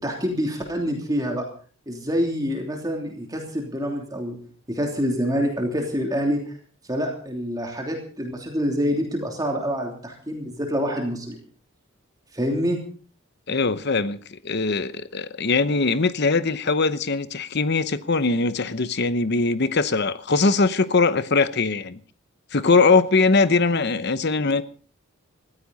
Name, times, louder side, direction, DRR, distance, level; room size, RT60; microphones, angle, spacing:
voice 1, 0.0-1.4 1.9-4.4 4.7-6.4 6.9-11.4 12.3-12.8, equal, 20° right, 3.0 m, -26 dB
voice 2, 13.5-22.0 22.5-24.6, left 3 dB, 50° left, 0.9 m, -21 dB
20.0 x 15.0 x 4.1 m
head